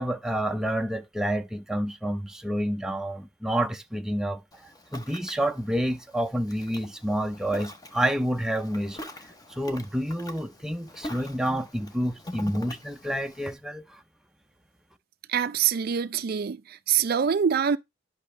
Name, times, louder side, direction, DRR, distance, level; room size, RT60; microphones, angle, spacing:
voice 1, 0.0-9.0 9.5-14.0, right 1 dB, 5° right, 0.5 m, -29 dB
Ocean, 4.5-13.5, left 1 dB, 20° left, 0.9 m, -44 dB
voice 2, 15.3-17.8, right 8 dB, 55° right, 0.4 m, -25 dB
10.5 x 5.5 x 3.2 m
head